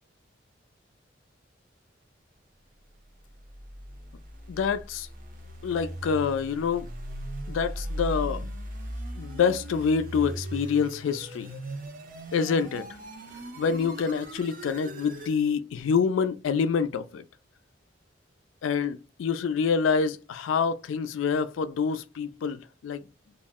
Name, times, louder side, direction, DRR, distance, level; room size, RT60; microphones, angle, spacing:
sound 1, 3.2-15.4, right 1 dB, 45° right, 0.5 m, -38 dB
voice 1, 4.5-5.1 5.6-6.9 7.5-8.4 9.2-11.5 12.3-12.8 13.6-17.2 18.6-23.0, left 6 dB, 85° left, 0.3 m, -26 dB
2.4 x 2.0 x 3.4 m
head